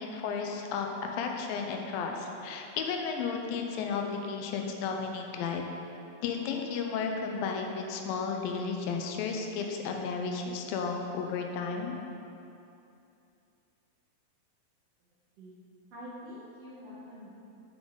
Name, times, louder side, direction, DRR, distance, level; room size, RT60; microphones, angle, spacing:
voice 1, 0.0-5.6 6.2-12.0, left 5 dB, 90° left, 2 dB, 2.4 m, -33 dB
voice 2, 15.9-17.3, left 1 dB, 60° right, -8 dB, 2.0 m, -45 dB
7.9 x 7.1 x 3.8 m, 2.7 s
omnidirectional pair, 4.2 m